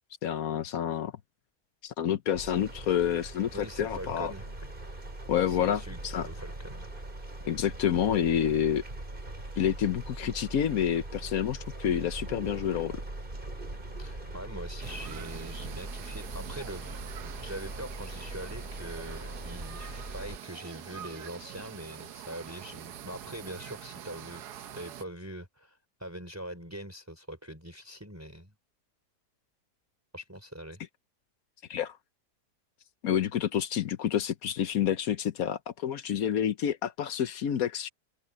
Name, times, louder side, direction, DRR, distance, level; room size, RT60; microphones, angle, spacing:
voice 1, 0.2-1.1 1.8-4.3 5.3-6.3 7.5-8.8 9.6-13.0 31.7-31.9 33.0-37.9, left 9 dB, 65° left, 1.2 m, -28 dB
sound 1, 2.3-20.4, right 2 dB, 30° right, 3.8 m, -41 dB
voice 2, 3.5-4.7 5.5-6.9 14.0-16.9 17.4-28.5 30.1-30.8, right 1 dB, 10° right, 4.0 m, -43 dB
sound 2, 14.8-25.1, right 10 dB, 80° right, 1.4 m, -45 dB
omnidirectional pair, 1.7 m